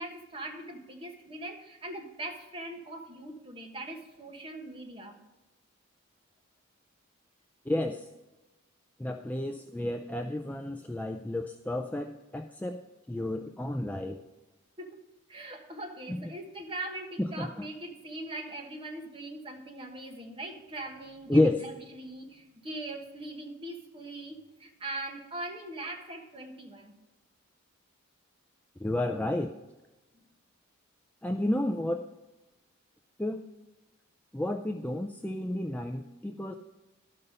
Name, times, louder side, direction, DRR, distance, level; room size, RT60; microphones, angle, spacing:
voice 1, 0.0-5.2 14.8-15.0 15.3-26.9, right 2 dB, 25° right, 2 dB, 1.3 m, -41 dB
voice 2, 7.7-8.1 9.0-12.8 13.1-14.2 16.1-16.2 17.2-17.5 21.3-21.6 28.8-29.5 31.2-32.1 33.2-33.4 34.3-36.6, left 1 dB, 10° left, 3 dB, 0.3 m, -30 dB
12.5 x 5.5 x 5.3 m, 1.1 s
head